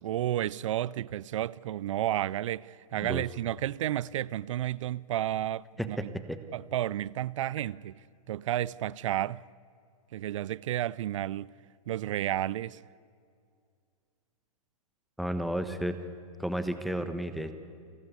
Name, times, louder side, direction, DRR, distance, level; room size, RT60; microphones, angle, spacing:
voice 1, 0.0-6.1 6.5-9.4 10.1-11.5 11.9-12.8, right 12 dB, 55° right, 0.4 m, -32 dB
voice 2, 5.8-6.4 15.2-16.0 16.4-17.5, equal, ahead, 1.2 m, -32 dB
29.0 x 12.5 x 8.4 m
hypercardioid pair, 120°, 19 cm